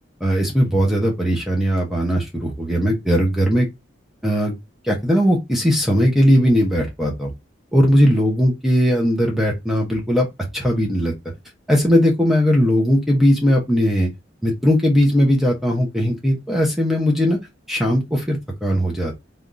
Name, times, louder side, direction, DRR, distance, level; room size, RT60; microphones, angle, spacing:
voice 1, 0.2-3.7 4.2-4.5 4.8-7.3 7.7-10.3 10.5-11.1 11.7-14.1 14.4-17.4 17.7-19.2, equal, ahead, 0.7 m, -18 dB
3.4 x 2.4 x 2.5 m
head